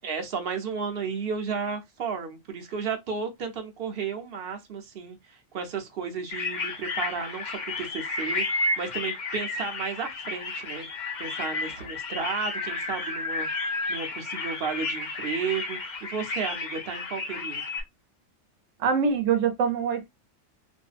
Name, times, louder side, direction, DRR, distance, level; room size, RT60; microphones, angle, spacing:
voice 1, 0.0-10.9 11.2-17.6, right 5 dB, 55° right, 0.8 m, -33 dB
sound 1, 6.3-17.8, left 3 dB, 50° left, 0.6 m, -32 dB
voice 2, 18.8-20.1, right 6 dB, 80° right, 1.1 m, -24 dB
2.6 x 2.5 x 2.4 m
omnidirectional pair, 1.3 m